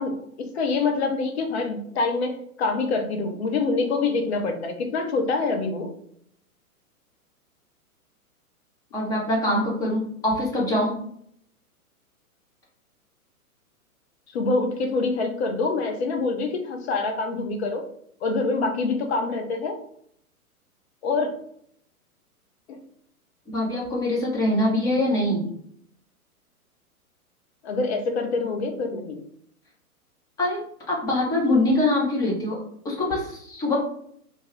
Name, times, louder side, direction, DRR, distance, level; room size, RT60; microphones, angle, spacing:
voice 1, 0.0-2.3 2.6-5.9 14.3-17.8 18.2-19.8 21.0-21.3 22.7-22.8 27.6-29.2, left 3 dB, 45° left, 4 dB, 0.7 m, -25 dB
voice 2, 8.9-10.9 23.5-25.5 30.4-32.6 32.8-33.8, left 1 dB, 10° left, -4 dB, 0.6 m, -24 dB
2.9 x 2.3 x 3.0 m, 0.67 s
figure-of-eight pair, 115°, 44 cm